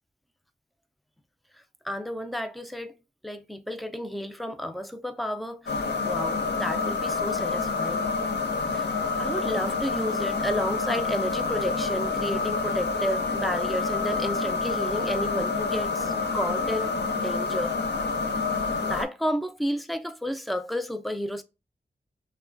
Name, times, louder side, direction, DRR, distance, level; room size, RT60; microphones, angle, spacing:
voice 1, 1.8-2.9 3.2-8.1 8.7-8.9 9.2-16.9 17.2-17.7 18.8-21.4, equal, ahead, 0.3 m, -31 dB
sound 1, 5.7-19.0, left 4 dB, 85° left, 0.6 m, -28 dB
3.0 x 2.2 x 2.4 m
wide cardioid pair, 85°, 17 cm